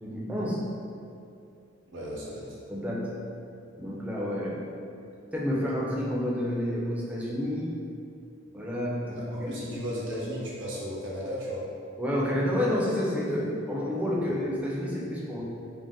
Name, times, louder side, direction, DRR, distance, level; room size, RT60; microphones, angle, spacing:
voice 1, 0.0-0.6 2.7-3.1 3.8-4.6 5.3-7.7 8.5-9.2 9.5-9.8 12.0-15.4, left 1 dB, 5° right, -5 dB, 0.4 m, -29 dB
voice 2, 1.9-2.6 9.1-11.6 14.4-14.5, equal, 65° right, -5 dB, 0.7 m, -35 dB
2.5 x 2.1 x 3.5 m, 2.5 s
head